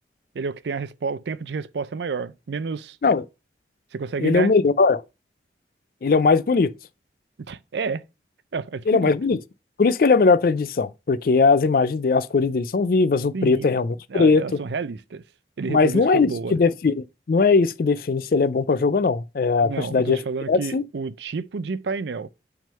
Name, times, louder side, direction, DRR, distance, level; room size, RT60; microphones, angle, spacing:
voice 1, 0.3-3.0 3.9-4.5 7.5-8.0 8.5-9.1 13.3-13.8 14.1-15.2 15.6-16.6 19.6-22.3, right 4 dB, 75° right, 0.5 m, -30 dB
voice 2, 4.2-5.0 6.0-6.7 8.9-9.4 9.8-14.6 15.7-20.2 20.5-20.8, left 4 dB, 50° left, 0.4 m, -20 dB
6.0 x 3.6 x 5.5 m
head